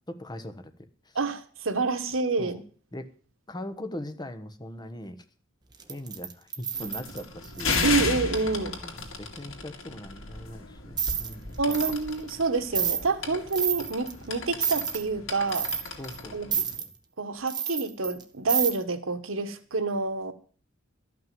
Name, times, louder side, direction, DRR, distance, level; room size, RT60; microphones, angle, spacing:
voice 1, 0.1-0.7 2.4-2.6 2.9-3.1 3.5-5.2 5.9-7.7 8.5-11.9 16.0-16.9, left 1 dB, 20° left, 9 dB, 1.1 m, -40 dB
voice 2, 1.1-2.6 7.8-8.8 11.6-15.7 16.3-16.5 17.2-20.3, right 3 dB, 85° right, 9 dB, 1.4 m, -28 dB
sound 1, 5.8-7.9 11.0-11.3 11.7-12.0 12.3-12.4 12.7-13.0 13.5-14.1 14.6-15.0 15.5-16.2 16.5-16.9 17.5-18.2 18.5-18.7, right 7 dB, 20° right, 1.2 m, -29 dB
sound 2, 6.7-16.8, left 4 dB, 85° left, 2.4 m, -35 dB
13.0 x 6.0 x 9.3 m, 0.42 s
head